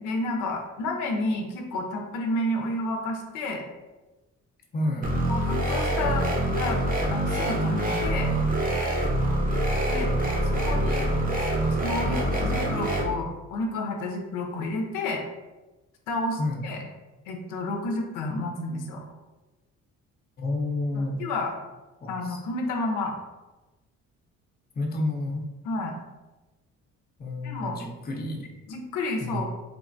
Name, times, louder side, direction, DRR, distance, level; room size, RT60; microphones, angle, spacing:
voice 1, 0.0-3.6 5.3-6.3 6.5-6.8 7.1-8.3 9.9-10.1 10.5-11.1 11.8-15.2 16.1-16.8 17.3-19.0 20.9-21.5 22.1-23.1 25.6-26.0 27.4-27.8 28.7-29.5, left 2 dB, 85° left, 2 dB, 0.5 m, -30 dB
voice 2, 4.7-5.1 16.4-16.6 20.4-21.2 22.0-22.4 24.7-25.5 27.2-28.5 29.2-29.5, left 2 dB, 30° left, 0 dB, 0.6 m, -30 dB
sound 1, 5.0-13.0, right 1 dB, 30° right, 0.7 m, -25 dB
3.2 x 2.1 x 2.5 m, 1.1 s
cardioid pair, 90°, 30 cm